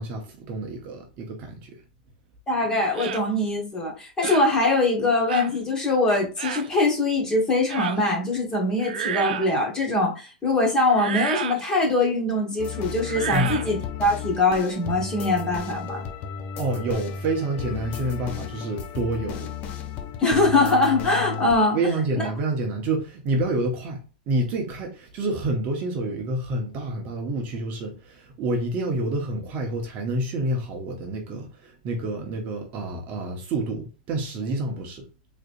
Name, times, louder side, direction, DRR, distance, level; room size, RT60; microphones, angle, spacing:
voice 1, 0.0-1.7 13.3-13.6 16.5-19.5 21.7-24.0 24.3-35.1, right 2 dB, 30° right, 0.8 m, -28 dB
voice 2, 2.5-16.0 20.2-21.8 22.1-22.3, left 2 dB, 15° left, 1.1 m, -22 dB
sound 1, 2.9-3.2 4.2-4.5 5.3-5.5 6.4-6.7 7.7-8.0 8.8-9.6 10.9-11.6 13.0-13.7, right 8 dB, 90° right, 0.5 m, -30 dB
sound 2, 12.6-21.6, left 7 dB, 30° left, 0.5 m, -34 dB
3.8 x 3.2 x 2.5 m
supercardioid pair, 155°, 5 cm